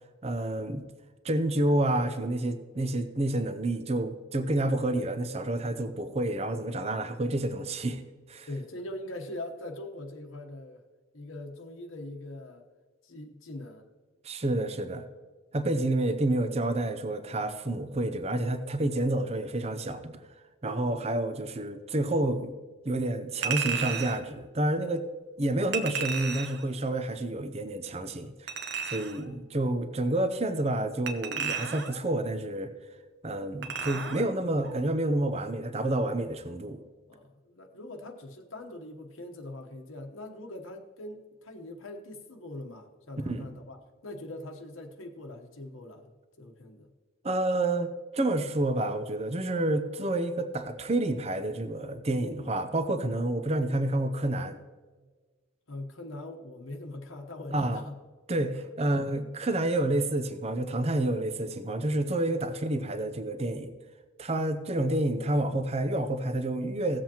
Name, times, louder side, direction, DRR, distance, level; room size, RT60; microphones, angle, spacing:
voice 1, 0.2-0.8 1.2-8.0 8.3-8.5 14.2-15.0 15.5-20.2 20.6-22.5 22.8-25.0 25.4-32.7 33.2-36.8 43.3-43.5 47.2-54.6 57.5-57.8 58.3-63.7 64.2-67.0, right 1 dB, 30° right, 9 dB, 0.6 m, -29 dB
voice 2, 8.5-10.8 11.1-12.7 13.0-13.9 20.9-21.1 37.1-46.9 52.3-52.5 55.7-57.9 58.5-58.7, left 1 dB, 80° left, 3 dB, 1.1 m, -42 dB
Chink clink, 23.4-24.2 25.7-26.7 28.5-29.2 31.1-32.0 33.6-34.3 34.6-34.8, right 6 dB, 55° right, 0.9 m, -33 dB
17.0 x 7.6 x 3.0 m, 1.4 s
head